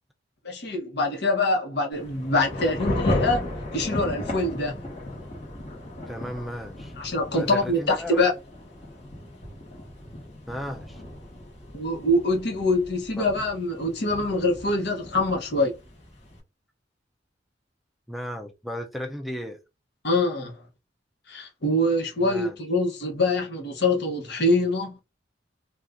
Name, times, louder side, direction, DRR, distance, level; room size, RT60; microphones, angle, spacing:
voice 1, 0.4-3.5 3.7-4.7 7.0-8.3 11.7-15.7 20.0-20.5 21.3-25.0, left 2 dB, 60° left, 1.0 m, -24 dB
Thunder / Rain, 1.9-16.4, left 1 dB, 35° left, 1.3 m, -35 dB
voice 2, 6.1-6.9 7.3-8.3 10.5-11.0 13.2-13.3 18.1-19.6 22.2-22.6, equal, ahead, 0.4 m, -35 dB
2.7 x 2.3 x 3.6 m
head